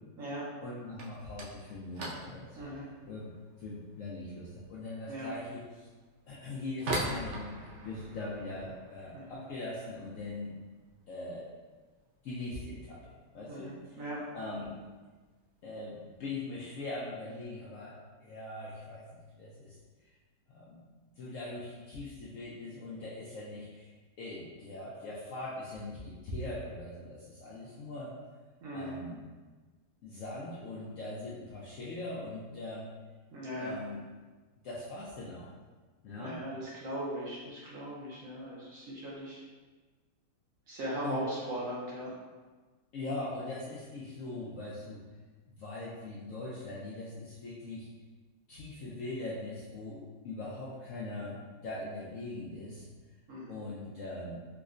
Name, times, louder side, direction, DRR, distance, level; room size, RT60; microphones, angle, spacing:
voice 1, 0.6-3.3 3.6-5.9 6.3-10.5 11.1-11.5 12.2-14.8 15.6-19.1 19.3-20.1 20.5-20.8 21.2-23.9 24.2-28.2 28.7-29.2 30.0-32.9 33.5-34.0 34.6-35.5 36.0-36.4 41.0-41.2 42.9-45.0 45.6-47.9 48.5-52.9 53.5-54.4, left 2 dB, 70° left, -6 dB, 0.7 m, -41 dB
sound 1, 0.9-11.6 11.9-12.5 12.8-13.1 13.4-13.5 14.2-14.3 15.2-15.4 15.8-16.2, right 1 dB, 80° right, 0.6 m, -42 dB
voice 2, 13.5-14.2 28.6-29.0 33.3-33.8 36.2-39.4 40.7-42.1 53.3-53.6, equal, 60° right, -6 dB, 1.0 m, -39 dB
4.5 x 2.1 x 2.4 m, 1.3 s
omnidirectional pair, 1.8 m